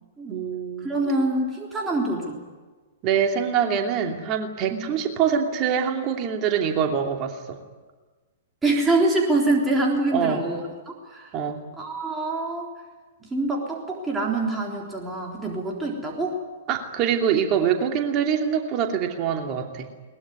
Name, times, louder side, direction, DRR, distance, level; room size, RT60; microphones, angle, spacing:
voice 1, 0.3-0.9 3.0-7.6 10.1-10.5 11.3-11.6 16.7-19.9, right 8 dB, 35° right, 3 dB, 2.8 m, -24 dB
voice 2, 0.8-2.4 4.7-4.8 8.6-10.6 10.9-11.3 11.8-12.7 13.3-16.4, right 2 dB, 10° right, -1 dB, 3.8 m, -25 dB
22.0 x 21.0 x 9.7 m, 1.3 s
figure-of-eight pair, 110°, 0 cm